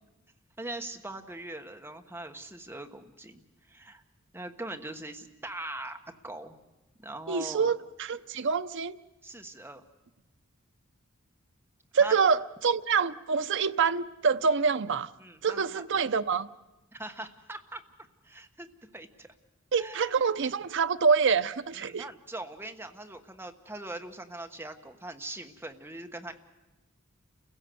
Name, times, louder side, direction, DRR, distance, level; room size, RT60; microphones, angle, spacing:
voice 1, 0.6-4.0 4.3-6.6 7.0-7.7 9.2-9.8 12.0-12.1 15.2-15.8 16.9-17.8 18.2-18.7 18.9-19.3 19.7-20.3 21.7-26.3, right 2 dB, 10° right, 1.3 m, -41 dB
voice 2, 7.3-9.0 11.9-15.1 15.4-16.5 19.7-22.0, right 5 dB, 60° right, 0.7 m, -26 dB
29.5 x 16.5 x 7.8 m
head